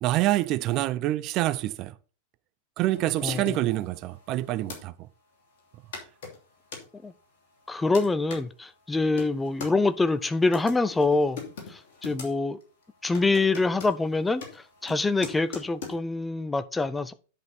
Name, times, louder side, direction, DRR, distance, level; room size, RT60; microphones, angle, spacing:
voice 1, 0.0-1.9 2.8-5.1, right 15 dB, 40° right, 0.5 m, -26 dB
sound 1, 2.9-4.8 5.6-5.7 5.9-6.8 7.5-8.4 8.9-9.7 10.4-12.3 12.6-12.8 13.1-16.0, left 5 dB, 55° left, 2.9 m, -42 dB
voice 2, 7.7-11.4 11.7-12.6 13.0-17.1, left 3 dB, 10° left, 0.5 m, -25 dB
10.5 x 5.3 x 4.2 m
figure-of-eight pair, 90°, 0 cm